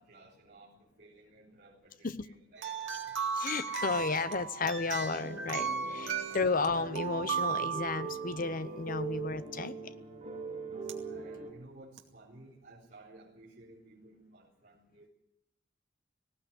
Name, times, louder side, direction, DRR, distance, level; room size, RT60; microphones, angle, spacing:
voice 1, 0.0-3.2 11.0-15.1, right 2 dB, 45° right, -6 dB, 4.4 m, -56 dB
sound 1, 2.6-8.5 10.9-11.0 12.0-12.1, right 6 dB, 70° right, 2.4 m, -36 dB
voice 2, 3.3-9.9, left 4 dB, 45° left, 13 dB, 0.9 m, -33 dB
sound 2, 5.2-11.5, right 4 dB, 30° right, 6.9 m, -42 dB
18.5 x 17.5 x 9.1 m, 0.83 s
head